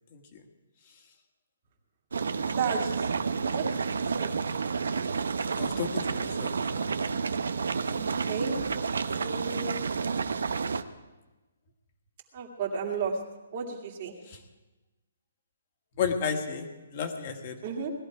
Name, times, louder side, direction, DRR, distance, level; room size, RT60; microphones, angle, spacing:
sound 1, 2.1-10.8, right 5 dB, 80° right, 0.8 m, -30 dB
voice 1, 2.5-3.1 3.5-3.8 4.1-4.3 7.9-8.5 9.0-9.8 12.3-13.1 13.5-14.1 17.6-17.9, right 5 dB, 30° right, 0 dB, 2.2 m, -33 dB
voice 2, 5.6-6.9 14.3-14.4 16.0-17.6, left 6 dB, 30° left, 5 dB, 1.6 m, -33 dB
19.5 x 13.5 x 4.7 m, 1.1 s
hypercardioid pair, 175°, 0 cm